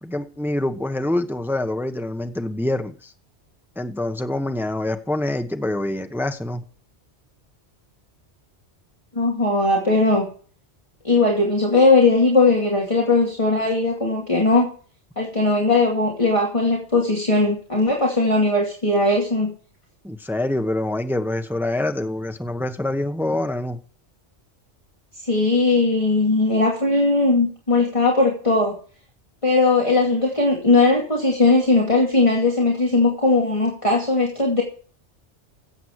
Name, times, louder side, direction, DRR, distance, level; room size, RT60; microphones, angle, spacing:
voice 1, 0.0-3.1 3.8-6.6 20.0-23.8, left 1 dB, ahead, 7 dB, 0.9 m, -25 dB
voice 2, 9.1-10.3 11.0-14.7 15.2-19.5 25.3-28.8 29.4-34.6, left 3 dB, 25° left, -3 dB, 2.5 m, -19 dB
15.5 x 8.0 x 4.8 m, 0.42 s
omnidirectional pair, 1.2 m